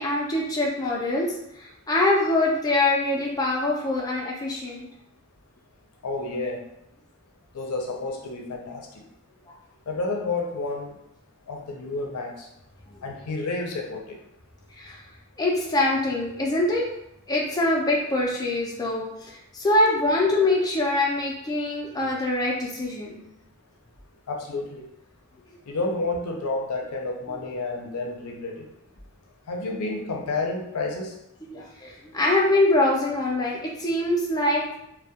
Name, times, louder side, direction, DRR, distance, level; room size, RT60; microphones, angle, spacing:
voice 1, 0.0-4.9 12.9-13.0 14.8-15.0 15.4-16.9 17.3-23.2 27.3-27.4 31.5-34.8, left 2 dB, 15° left, -3 dB, 0.4 m, -24 dB
voice 2, 6.0-6.6 7.5-8.9 9.9-10.9 11.5-12.5 13.0-14.2 24.3-24.8 25.7-28.7 29.5-31.1, left 3 dB, 85° left, 1 dB, 0.5 m, -30 dB
2.2 x 2.0 x 2.7 m, 0.81 s
head